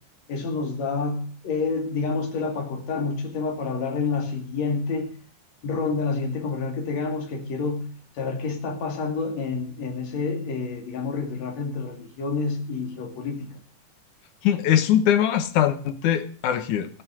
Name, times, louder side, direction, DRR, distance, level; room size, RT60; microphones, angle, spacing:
voice 1, 0.3-5.1 5.6-7.9 8.2-13.5, left 4 dB, 60° left, 2 dB, 3.5 m, -28 dB
voice 2, 14.4-16.9, left 10 dB, 90° left, 10 dB, 2.6 m, -21 dB
19.0 x 6.7 x 6.3 m, 0.42 s
omnidirectional pair, 3.5 m